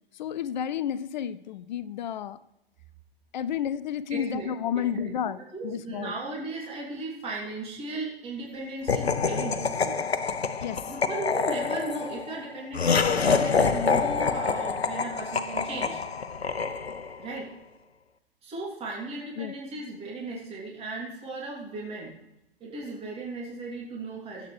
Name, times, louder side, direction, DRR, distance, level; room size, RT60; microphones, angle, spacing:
voice 1, 0.2-2.4 3.3-5.4 5.6-6.1 10.6-10.8 19.4-19.5, left 9 dB, 50° left, 15 dB, 0.5 m, -31 dB
voice 2, 4.1-4.5 4.7-10.1 10.9-16.0 17.2-17.5 18.4-22.2 22.6-24.5, right 3 dB, 20° right, -4 dB, 3.0 m, -36 dB
Laughter, 8.9-17.2, left 5 dB, 85° left, 0.8 m, -26 dB
22.0 x 8.2 x 3.3 m, 0.89 s
figure-of-eight pair, 110°, 31 cm